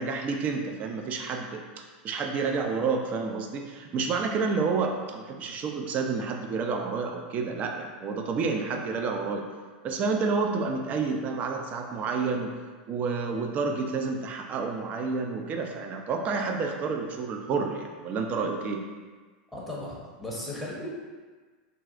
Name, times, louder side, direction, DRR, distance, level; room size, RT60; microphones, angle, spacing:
voice 1, 0.0-1.6 2.0-9.5 9.8-12.5 12.9-18.8, right 4 dB, 35° right, 3 dB, 0.4 m, -29 dB
voice 2, 19.5-20.9, left 1 dB, ahead, -6 dB, 0.8 m, -36 dB
3.9 x 2.3 x 2.4 m, 1.4 s
supercardioid pair, 125°, 5 cm